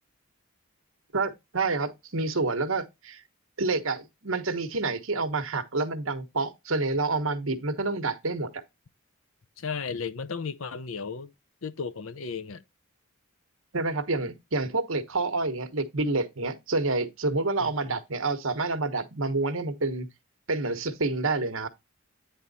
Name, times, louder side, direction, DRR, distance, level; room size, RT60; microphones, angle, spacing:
voice 1, 1.1-3.2 3.6-8.6 13.7-20.1 20.5-21.7, right 3 dB, 65° right, 1.2 m, -28 dB
voice 2, 9.6-11.3 11.6-12.6 17.6-18.0, left 5 dB, 65° left, 0.6 m, -35 dB
9.4 x 3.6 x 4.1 m
head